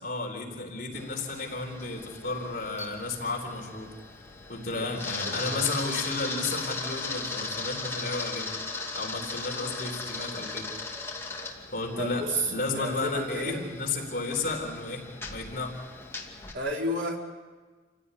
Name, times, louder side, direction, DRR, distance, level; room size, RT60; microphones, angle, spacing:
voice 1, 0.0-3.9 4.5-8.5 8.9-10.7 11.7-15.0 15.3-15.7, left 3 dB, 50° left, 1 dB, 4.2 m, -33 dB
Camera, 0.9-16.5, left 3 dB, 15° left, 2.6 m, -38 dB
voice 2, 5.2-5.7 11.9-13.7 16.5-17.2, right 1 dB, 80° right, 0 dB, 4.4 m, -32 dB
28.5 x 16.5 x 9.8 m, 1.4 s
head